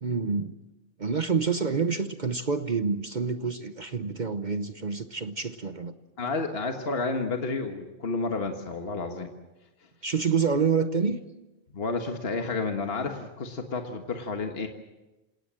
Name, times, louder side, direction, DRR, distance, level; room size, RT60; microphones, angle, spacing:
voice 1, 0.0-0.6 1.0-5.9 10.0-11.2, right 5 dB, 40° right, 10 dB, 1.0 m, -27 dB
voice 2, 6.2-9.3 11.7-14.7, left 3 dB, 55° left, 4 dB, 1.8 m, -31 dB
27.5 x 18.5 x 7.6 m, 1.0 s
omnidirectional pair, 1.2 m